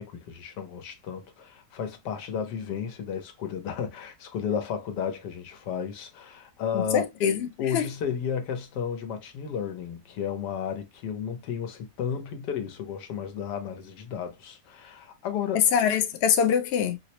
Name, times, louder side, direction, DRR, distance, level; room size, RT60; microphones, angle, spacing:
voice 1, 0.0-7.1 7.6-15.6, left 7 dB, 90° left, 1.4 m, -33 dB
voice 2, 6.7-7.9 15.7-17.0, left 8 dB, 60° left, 0.6 m, -24 dB
4.8 x 2.0 x 2.7 m
omnidirectional pair, 1.8 m